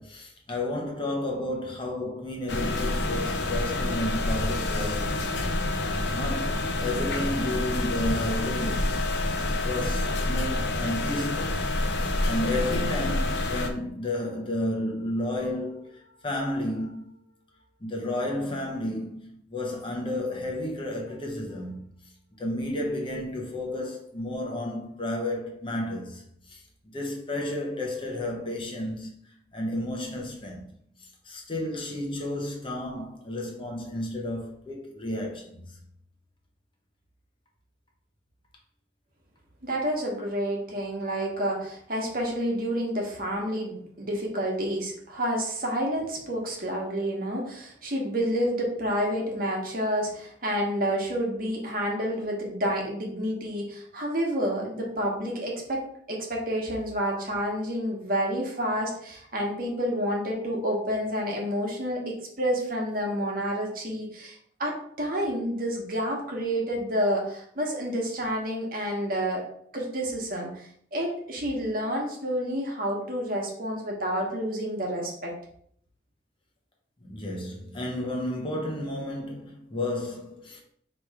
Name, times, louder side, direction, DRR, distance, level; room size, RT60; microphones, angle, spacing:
voice 1, 0.0-5.3 6.1-9.2 9.6-11.6 11.9-17.2 17.8-21.9 22.4-26.6 26.9-30.7 31.0-35.8 77.0-80.6, left 1 dB, 30° left, 0.8 m, -32 dB
sound 1, 2.5-13.7, left 2 dB, 65° left, 0.6 m, -28 dB
voice 2, 39.6-55.8 56.1-69.4 69.7-75.3, equal, 50° right, 1.2 m, -29 dB
3.4 x 3.0 x 4.8 m
head